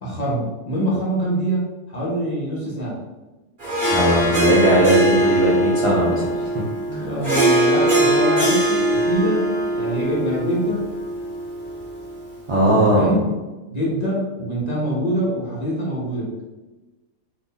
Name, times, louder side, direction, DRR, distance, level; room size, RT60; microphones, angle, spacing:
voice 1, 0.0-3.0 7.0-9.5 9.7-10.9 12.7-13.2 13.7-16.3, equal, 35° left, -6 dB, 0.7 m, -24 dB
Harp, 3.6-12.2, right 1 dB, 40° right, 1.0 m, -21 dB
voice 2, 3.9-6.5 6.9-7.1 12.5-13.2, right 1 dB, 55° right, -7 dB, 0.3 m, -19 dB
2.6 x 2.6 x 3.8 m, 1.1 s
omnidirectional pair, 1.5 m